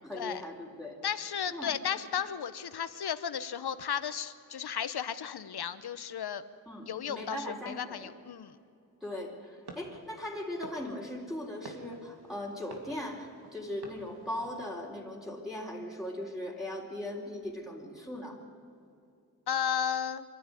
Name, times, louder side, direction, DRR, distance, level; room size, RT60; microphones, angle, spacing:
voice 1, 0.0-1.0 1.5-1.8 6.7-8.1 9.0-18.4, left 1 dB, ahead, -4 dB, 4.0 m, -39 dB
voice 2, 1.0-6.4 6.8-8.6 19.5-20.2, left 8 dB, 90° left, 13 dB, 0.9 m, -34 dB
sound 1, 9.6-14.8, right 2 dB, 90° right, 2.9 m, -52 dB
25.5 x 12.0 x 9.7 m, 2.5 s
cardioid pair, 60°, 37 cm